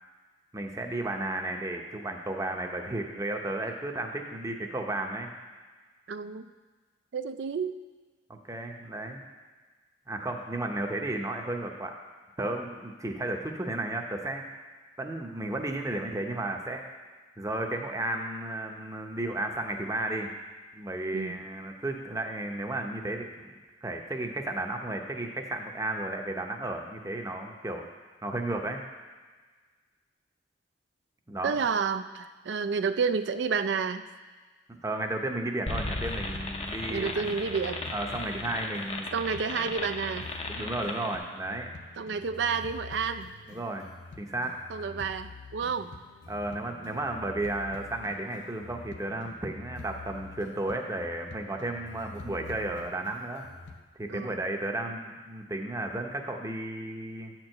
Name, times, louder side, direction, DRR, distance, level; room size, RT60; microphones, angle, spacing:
voice 1, 0.5-5.3 8.3-9.2 10.1-11.9 12.4-14.4 15.0-16.8 17.4-20.3 20.7-23.5 23.8-27.9 28.2-28.8 31.3-31.5 34.7-37.3 37.9-39.1 40.5-41.7 43.5-43.9 44.2-44.6 46.3-53.5 54.0-57.3, right 2 dB, 20° right, 3 dB, 0.7 m, -33 dB
voice 2, 6.1-6.5 7.1-7.8 21.1-21.4 31.4-34.1 36.9-37.8 39.1-40.3 42.0-43.3 44.7-45.9 54.1-54.4, right 5 dB, 70° right, 10 dB, 0.4 m, -30 dB
sound 1, 35.7-53.8, left 4 dB, 85° left, 0.6 m, -47 dB
sound 2, 35.7-41.2, left 2 dB, 35° left, 0.6 m, -36 dB
8.4 x 4.5 x 6.5 m, 1.4 s
head